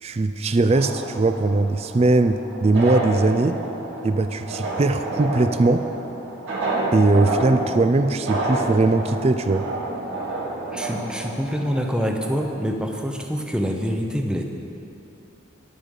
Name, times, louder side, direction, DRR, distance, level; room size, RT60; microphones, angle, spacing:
voice 1, 0.0-3.6 4.0-5.9 6.9-9.7, right 2 dB, 30° right, 10 dB, 0.3 m, -20 dB
sound 1, 0.7-12.5, right 2 dB, 75° right, 2.6 m, -29 dB
voice 2, 10.7-14.4, equal, 5° right, 3 dB, 0.7 m, -26 dB
11.0 x 8.7 x 6.4 m, 2.7 s
head